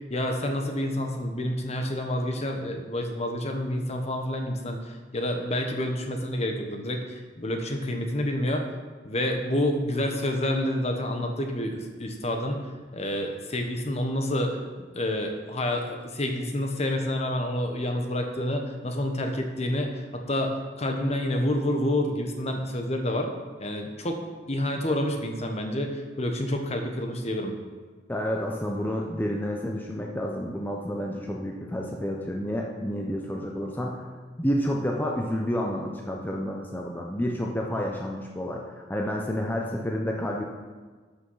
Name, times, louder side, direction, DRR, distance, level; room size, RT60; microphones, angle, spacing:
voice 1, 0.1-8.6 9.0-14.6 14.9-23.3 23.6-24.2 24.5-27.5, left 1 dB, 35° left, 4 dB, 1.2 m, -28 dB
voice 2, 28.1-34.0 34.4-40.4, equal, 10° left, -1 dB, 0.8 m, -30 dB
13.0 x 5.9 x 5.7 m, 1.4 s
head